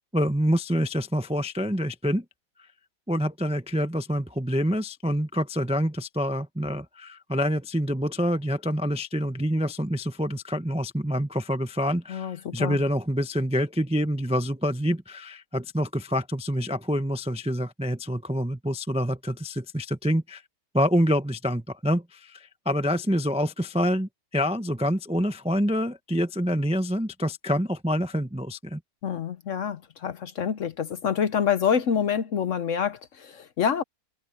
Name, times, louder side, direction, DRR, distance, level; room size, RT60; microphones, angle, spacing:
voice 1, 0.1-2.2 3.1-20.4 20.7-28.8, equal, 5° right, 0.4 m, -26 dB
voice 2, 12.1-12.8 29.0-33.8, left 7 dB, 55° left, 1.0 m, -27 dB
omnidirectional pair, 1.8 m